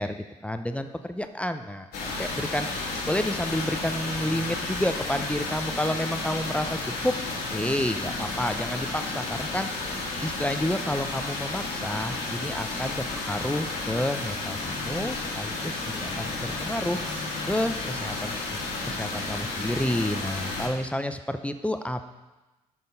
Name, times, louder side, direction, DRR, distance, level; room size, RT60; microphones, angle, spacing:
voice 1, 0.0-7.1 7.5-9.9 10.2-17.0 17.4-18.6 18.9-22.1, left 1 dB, 5° left, 8 dB, 0.6 m, -30 dB
sound 1, 1.9-20.7, left 3 dB, 65° left, 2.0 m, -32 dB
7.9 x 5.5 x 5.4 m, 1.1 s
hypercardioid pair, 50°, 18 cm